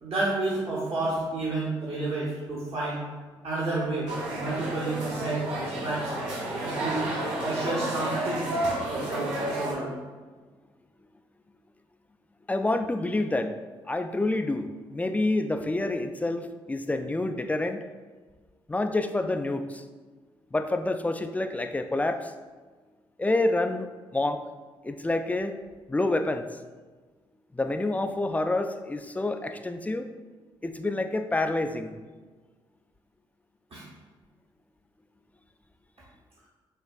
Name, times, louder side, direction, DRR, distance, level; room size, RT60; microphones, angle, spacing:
voice 1, 0.0-3.0 3.4-6.2 6.6-7.1 7.4-8.5 8.9-9.9 33.7-33.8, right 2 dB, 55° right, -7 dB, 1.2 m, -30 dB
sound 1, 4.1-9.7, right 1 dB, 75° right, 0.9 m, -31 dB
voice 2, 12.5-13.6 13.9-17.8 18.7-19.8 20.5-22.3 23.2-24.4 24.8-25.6 25.9-26.5 27.5-30.1 30.6-32.0, left 2 dB, 10° left, 8 dB, 0.3 m, -28 dB
6.6 x 2.4 x 2.3 m, 1.4 s
hypercardioid pair, 40°, 12 cm